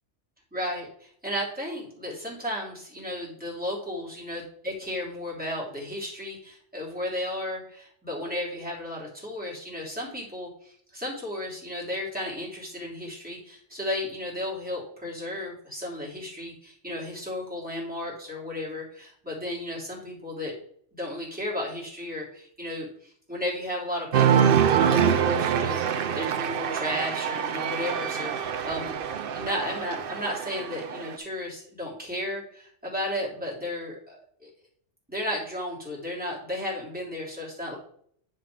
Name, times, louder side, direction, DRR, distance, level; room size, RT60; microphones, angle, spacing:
voice 1, 0.5-20.6 20.9-29.0 29.3-34.5 35.1-37.8, left 1 dB, 5° right, -5 dB, 3.0 m, -34 dB
Cheering, 24.1-31.2, right 8 dB, 55° right, 0.8 m, -25 dB
10.0 x 4.3 x 4.7 m, 0.65 s
omnidirectional pair, 1.2 m